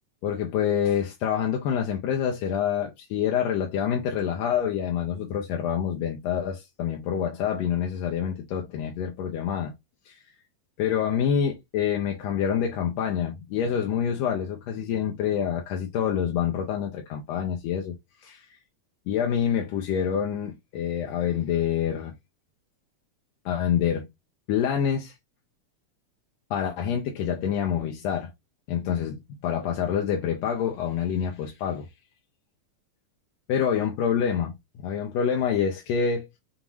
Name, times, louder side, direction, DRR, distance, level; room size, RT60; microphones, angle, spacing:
voice 1, 0.2-9.7 10.1-10.2 10.8-17.9 18.2-18.4 19.1-22.1 23.4-24.1 24.5-25.1 26.5-28.3 28.7-31.9 33.5-34.5 34.8-36.4, left 8 dB, 75° left, 1.7 m, -27 dB
5.4 x 2.5 x 2.9 m
omnidirectional pair, 3.4 m